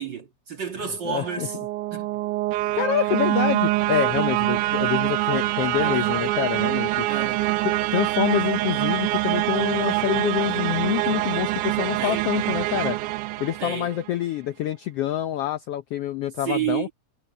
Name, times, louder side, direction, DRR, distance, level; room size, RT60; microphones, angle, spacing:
voice 1, 0.0-1.6 1.9-2.1 5.8-6.1 7.1-7.5 12.0-12.3 13.6-13.9 16.4-16.9, right 8 dB, 45° right, 2.0 m, -30 dB
voice 2, 1.0-1.5 2.7-7.1 7.6-13.0 13.4-16.9, left 12 dB, 75° left, 1.4 m, -26 dB
sound 1, 1.1-14.1, right 18 dB, 85° right, 2.1 m, -25 dB
omnidirectional pair, 3.5 m